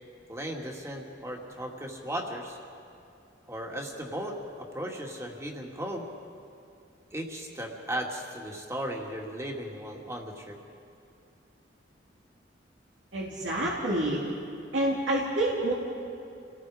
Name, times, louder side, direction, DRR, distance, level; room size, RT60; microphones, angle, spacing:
voice 1, 0.3-2.6 3.5-6.1 7.1-10.6, equal, 15° right, 1 dB, 2.3 m, -36 dB
voice 2, 13.1-14.2 14.7-15.7, right 1 dB, 85° right, -4 dB, 2.7 m, -27 dB
29.0 x 18.5 x 5.0 m, 2.7 s
head